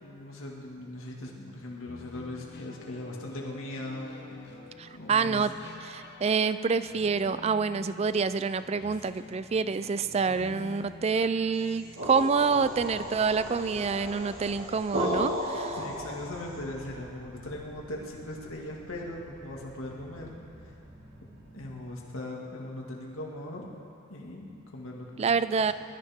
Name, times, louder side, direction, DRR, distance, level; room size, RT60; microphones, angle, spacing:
voice 1, 0.0-4.5 4.9-5.5 10.3-10.5 15.7-20.3 21.5-23.7 24.1-25.7, left 1 dB, 80° left, -2 dB, 2.1 m, -40 dB
sound 1, 1.9-13.0, left 3 dB, 55° left, 1.1 m, -49 dB
voice 2, 4.8-5.5 5.8-15.8 25.2-25.7, right 5 dB, 30° right, 13 dB, 0.3 m, -27 dB
sound 2, 11.6-16.6, equal, 75° right, 3.7 m, -34 dB
sound 3, 12.5-21.9, right 1 dB, 50° right, 1.4 m, -51 dB
22.5 x 13.0 x 3.6 m, 2.8 s
head